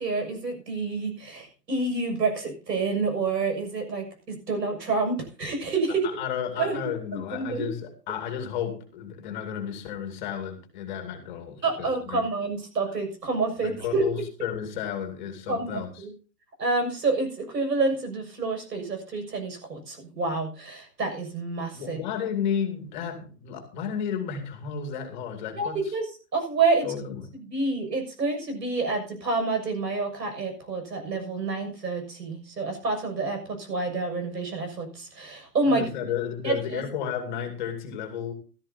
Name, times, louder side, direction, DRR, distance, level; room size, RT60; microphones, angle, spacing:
voice 1, 0.0-6.1 6.6-6.8 7.1-7.7 11.6-14.1 15.5-16.1 16.6-22.0 25.5-26.1 26.3-26.9 27.5-35.8 36.4-36.8, right 3 dB, 85° right, 5 dB, 6.8 m, -28 dB
voice 2, 6.2-12.2 13.6-16.1 21.7-25.8 26.8-27.2 35.7-38.3, left 8 dB, 30° left, 6 dB, 2.4 m, -32 dB
17.0 x 13.5 x 2.8 m, 0.35 s
hypercardioid pair, 165°, 48 cm